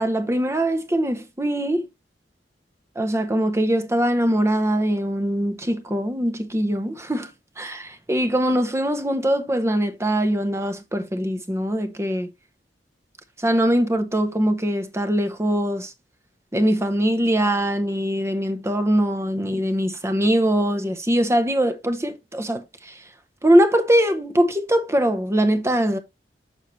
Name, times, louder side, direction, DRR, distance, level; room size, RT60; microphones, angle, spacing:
voice 1, 0.0-1.8 3.0-7.3 7.6-12.3 13.4-15.9 16.5-23.0 23.4-26.0, equal, 15° right, 0.8 m, -22 dB
6.6 x 6.4 x 3.0 m
head